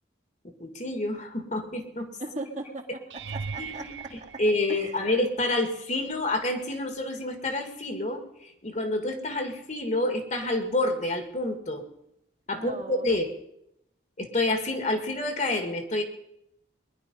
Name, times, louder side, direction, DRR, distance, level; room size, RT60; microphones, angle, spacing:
voice 1, 0.6-2.1 3.6-11.8 12.5-13.3 14.2-16.0, left 2 dB, 40° left, 5 dB, 1.9 m, -28 dB
voice 2, 2.2-3.9 4.3-4.4 4.7-5.0 12.5-13.1, right 2 dB, 40° right, 0 dB, 2.0 m, -38 dB
sound 1, 3.1-5.4 6.1-6.5 6.9-7.0 11.4-11.5, right 5 dB, 75° right, 0.6 m, -40 dB
21.5 x 11.0 x 5.4 m, 0.82 s
head